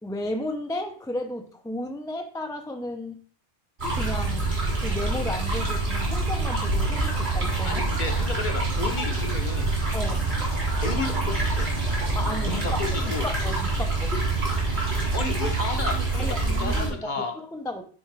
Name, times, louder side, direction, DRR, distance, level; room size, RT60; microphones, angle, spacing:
voice 1, 0.0-3.2 3.9-7.8 9.9-10.3 12.1-12.6 12.9-14.1 16.2-17.8, left 1 dB, 5° left, 4 dB, 0.4 m, -34 dB
sound 1, 3.8-16.9, right 3 dB, 70° right, 3.1 m, -26 dB
voice 2, 7.6-9.7 10.8-11.7 12.4-13.3 15.1-17.3, left 4 dB, 45° left, 5 dB, 1.0 m, -32 dB
9.3 x 3.5 x 3.3 m, 0.43 s
omnidirectional pair, 1.2 m